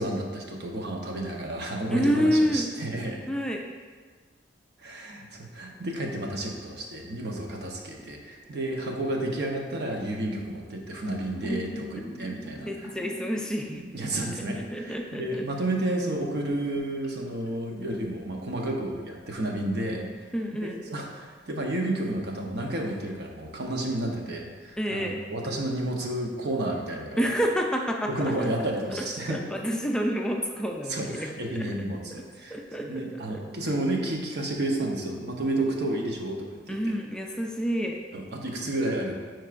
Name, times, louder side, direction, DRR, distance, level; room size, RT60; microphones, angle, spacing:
voice 1, 0.0-3.2 4.8-12.9 13.9-20.3 20.6-27.3 28.1-29.4 30.9-36.9 38.1-39.1, right 1 dB, 65° right, 1 dB, 0.9 m, -31 dB
voice 2, 1.9-2.7 3.3-3.7 12.7-15.4 20.3-20.8 24.8-25.2 27.2-28.1 28.4-28.5 28.9-29.0 29.3-31.7 32.5-33.2 36.7-38.0, equal, 5° left, 1 dB, 0.4 m, -28 dB
sound 1, 5.3-7.6 7.9-9.8 10.9-15.4 15.6-17.9 19.0-19.3 19.5-19.6 19.9-20.5 20.9-21.0 21.3-21.9 22.3-22.8 23.1-23.2 23.7-23.8 24.0-24.7, right 1 dB, 25° right, 1.2 m, -43 dB
9.4 x 4.5 x 2.5 m, 1.5 s
head